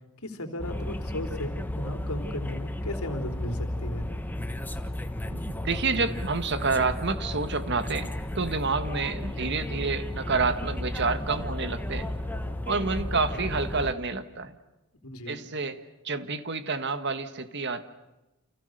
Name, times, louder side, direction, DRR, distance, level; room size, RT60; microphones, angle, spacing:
voice 1, 0.2-4.1 15.0-15.4, left 1 dB, 80° left, 5 dB, 3.7 m, -35 dB
sound 1, 0.6-13.9, left 1 dB, 10° left, 1.3 m, -33 dB
voice 2, 5.3-12.1 12.7-14.6 15.3-17.8, right 4 dB, 50° right, 10 dB, 1.6 m, -29 dB
29.5 x 29.0 x 6.6 m, 0.98 s
head